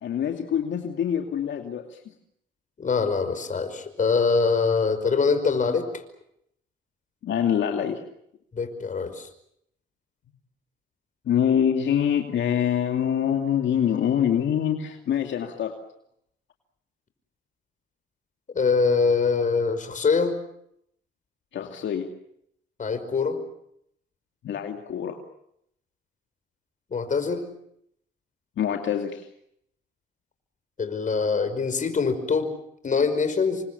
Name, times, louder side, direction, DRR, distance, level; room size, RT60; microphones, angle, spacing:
voice 1, 0.0-2.0 7.2-8.0 11.3-15.8 21.5-22.1 24.4-25.2 28.6-29.3, left 9 dB, 70° left, 4 dB, 2.6 m, -25 dB
voice 2, 2.8-5.9 8.5-9.3 18.5-20.3 22.8-23.4 26.9-27.5 30.8-32.5 32.8-33.6, left 5 dB, 40° left, 9 dB, 5.3 m, -23 dB
29.0 x 25.0 x 7.1 m, 0.73 s
cardioid pair, 90°, 20 cm